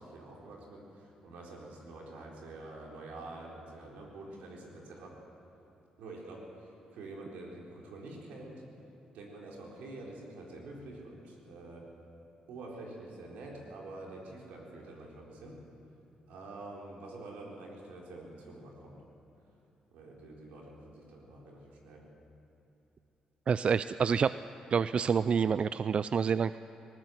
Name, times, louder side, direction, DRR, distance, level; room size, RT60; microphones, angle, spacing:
voice 1, 0.0-5.1 6.0-8.6 9.1-11.9 12.5-15.6 16.3-19.0 19.9-22.0, right 2 dB, 85° right, -2 dB, 4.2 m, -47 dB
voice 2, 23.5-24.3 24.7-26.6, right 6 dB, 50° right, 15 dB, 0.4 m, -27 dB
19.0 x 18.5 x 7.9 m, 2.9 s
cardioid pair, 70°, 2 cm